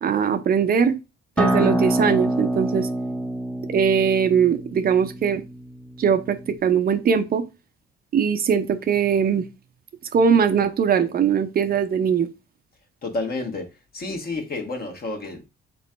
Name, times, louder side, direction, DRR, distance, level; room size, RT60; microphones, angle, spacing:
voice 1, 0.0-0.9 1.4-2.9 3.7-5.4 6.0-7.4 8.1-9.5 10.1-12.3, right 7 dB, 50° right, 0.6 m, -20 dB
Acoustic guitar, 1.4-6.6, right 1 dB, 5° left, 0.6 m, -26 dB
voice 2, 13.0-13.6 13.9-15.5, left 3 dB, 50° left, 1.3 m, -30 dB
3.7 x 3.0 x 4.3 m
cardioid pair, 90°, 20 cm